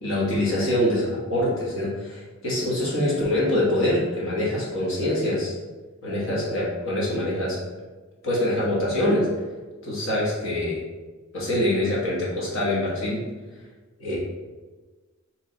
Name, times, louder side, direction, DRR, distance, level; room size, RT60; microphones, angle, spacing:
voice 1, 0.0-5.5 6.0-7.6 8.2-9.3 9.8-10.8 11.3-13.2 14.0-14.2, left 1 dB, 75° left, -6 dB, 1.2 m, -24 dB
3.0 x 3.0 x 3.8 m, 1.3 s
head